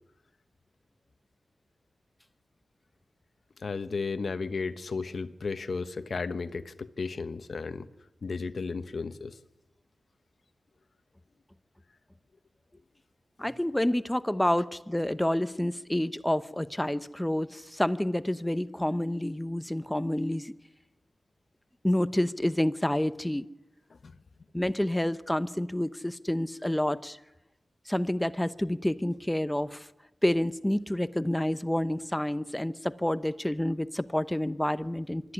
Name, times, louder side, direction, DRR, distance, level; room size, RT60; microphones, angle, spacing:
voice 1, 3.6-7.9 8.2-9.4 23.9-24.2, left 4 dB, 70° left, 1.1 m, -34 dB
voice 2, 13.4-20.5 21.8-23.5 24.5-27.2 27.9-29.9 30.2-35.3, left 1 dB, 10° left, 0.8 m, -28 dB
24.0 x 13.5 x 9.9 m
cardioid pair, 60°, 0 cm